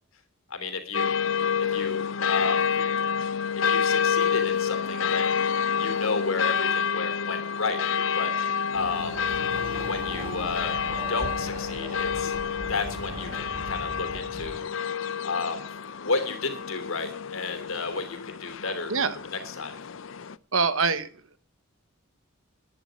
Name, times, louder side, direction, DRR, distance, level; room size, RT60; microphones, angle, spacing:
voice 1, 0.5-1.1 1.7-2.7 3.7-5.4 5.7-7.8 8.1-8.3 8.7-9.3 9.8-10.8 11.1-12.3 12.7-14.7 15.2-15.7 16.0-19.0 19.3-19.7, left 4 dB, 85° left, 7 dB, 3.1 m, -32 dB
sound 1, 0.9-20.4, left 7 dB, 65° left, 0.6 m, -28 dB
Chatter / Car passing by / Motorcycle, 8.7-14.6, equal, 25° right, 4.0 m, -39 dB
voice 2, 20.5-21.1, right 5 dB, 80° right, 13 dB, 1.3 m, -24 dB
11.5 x 10.5 x 6.4 m, 0.41 s
head